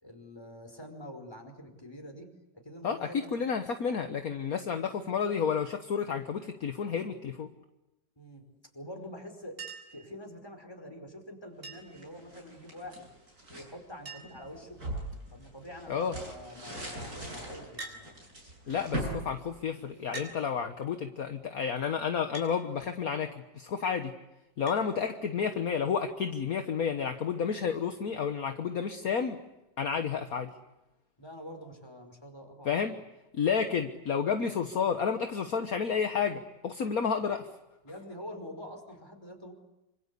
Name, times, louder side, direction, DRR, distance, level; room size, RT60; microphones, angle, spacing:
voice 1, 0.0-2.3 2.6-3.4 8.2-8.4 8.7-9.6 9.9-13.1 13.5-14.8 15.3-18.1 18.6-18.7 31.2-32.9 33.7-33.8 37.8-39.5, left 1 dB, 15° left, 4 dB, 5.1 m, -46 dB
voice 2, 2.8-7.5 15.9-16.1 18.7-24.1 24.6-29.4 29.8-30.5 32.6-33.0 33.3-37.5, left 6 dB, 55° left, 7 dB, 1.6 m, -31 dB
Chink clink, 9.6-10.0 11.6-12.0 13.4-13.5 13.7-13.8 14.1-14.5 15.3-15.6 17.8-18.0 19.1-19.2 20.1-20.4 22.3-22.5 24.7-24.8 26.3-26.4, right 3 dB, 30° right, 7.3 m, -43 dB
sound 1, 11.7-13.7 14.2-20.3, right 1 dB, 55° right, 8.8 m, -41 dB
27.5 x 26.0 x 8.4 m, 0.95 s
omnidirectional pair, 1.9 m